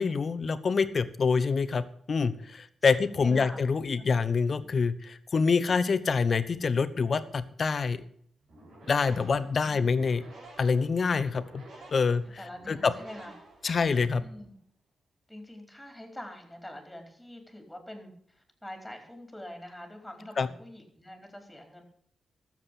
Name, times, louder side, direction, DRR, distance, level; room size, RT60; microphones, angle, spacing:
voice 1, 0.0-8.0 8.9-10.2 10.6-11.6 11.9-12.2 12.7-12.9 13.6-14.2 20.4-20.5, left 5 dB, 55° left, 13 dB, 1.0 m, -26 dB
voice 2, 2.8-3.6 4.0-4.1 4.6-4.7 12.4-13.3 14.2-14.5 15.3-21.8, left 1 dB, 5° left, 4 dB, 4.2 m, -45 dB
sound 1, 8.4-14.1, right 2 dB, 80° right, 5.5 m, -51 dB
13.5 x 7.5 x 8.4 m, 0.65 s
cardioid pair, 55°, 0 cm